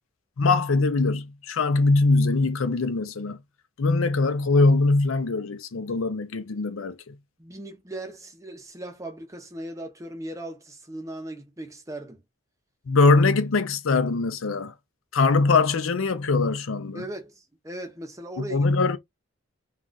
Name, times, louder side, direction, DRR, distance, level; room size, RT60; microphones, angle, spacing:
voice 1, 0.4-3.4 3.8-7.1 12.9-14.7 15.1-17.0 18.4-19.0, left 3 dB, 85° left, 0.5 m, -22 dB
voice 2, 7.4-12.2 16.9-18.6, right 1 dB, 15° right, 0.7 m, -38 dB
2.5 x 2.3 x 3.9 m
head